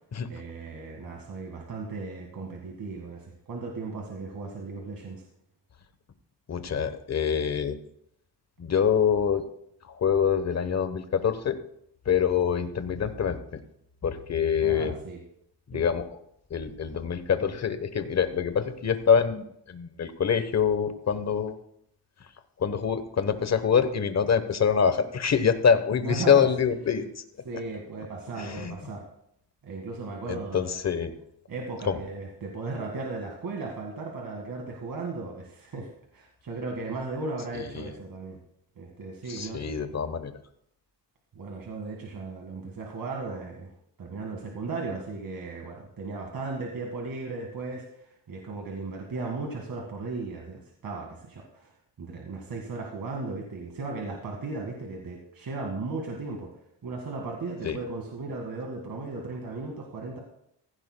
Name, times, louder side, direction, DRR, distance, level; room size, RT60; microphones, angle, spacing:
voice 1, 0.3-5.2 14.6-15.2 15.7-15.8 26.0-26.5 27.4-29.0 29.6-30.8 31.5-38.4 38.8-39.7 41.4-43.7 44.0-56.5 56.8-60.2, right 3 dB, 50° right, 0 dB, 1.9 m, -36 dB
voice 2, 6.5-7.8 8.6-9.4 9.9-11.6 12.1-13.4 14.0-14.9 15.7-16.0 16.5-21.6 22.6-27.0 28.4-28.7 30.3-31.1 31.9-32.0 37.7-37.9 39.3-40.3 57.6-57.8, left 7 dB, 35° left, 10 dB, 1.0 m, -25 dB
16.0 x 15.5 x 2.2 m, 0.72 s
wide cardioid pair, 140°, 43 cm